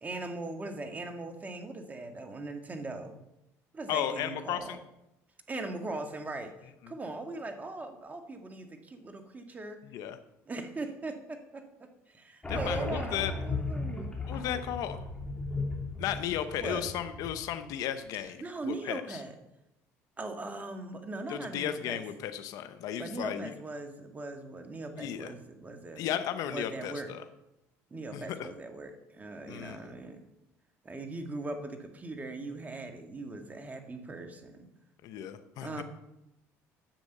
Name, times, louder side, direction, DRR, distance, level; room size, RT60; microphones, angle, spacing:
voice 1, 0.0-3.2 3.7-4.8 5.5-6.5 6.9-9.8 10.5-14.2 16.6-16.9 18.4-19.4 20.2-22.0 23.0-26.0 26.5-27.1 27.9-30.3 30.8-34.7 35.6-35.8, right 2 dB, 25° right, 5 dB, 1.9 m, -40 dB
voice 2, 3.9-4.8 9.9-10.2 12.5-13.3 14.3-15.0 16.0-19.2 21.3-23.5 25.0-25.3 26.0-27.2 28.1-28.5 29.5-29.9 35.0-35.8, left 10 dB, 70° left, 9 dB, 0.9 m, -35 dB
sound 1, 12.4-17.7, left 3 dB, 15° left, 3.0 m, -36 dB
10.5 x 7.6 x 6.7 m, 0.87 s
supercardioid pair, 90°, 6 cm